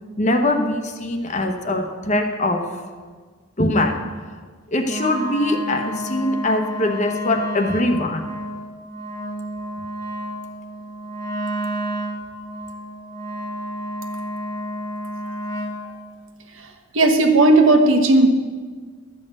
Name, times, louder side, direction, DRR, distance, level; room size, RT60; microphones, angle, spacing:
voice 1, 0.2-2.6 3.6-4.0 4.7-8.3, left 1 dB, 35° left, 5 dB, 1.0 m, -22 dB
Wind instrument woodwind instrument, 4.8-15.9, equal, 15° left, 1.4 m, -30 dB
voice 2, 16.9-18.3, right 2 dB, 70° right, 5 dB, 1.2 m, -14 dB
12.0 x 5.5 x 8.1 m, 1.5 s
head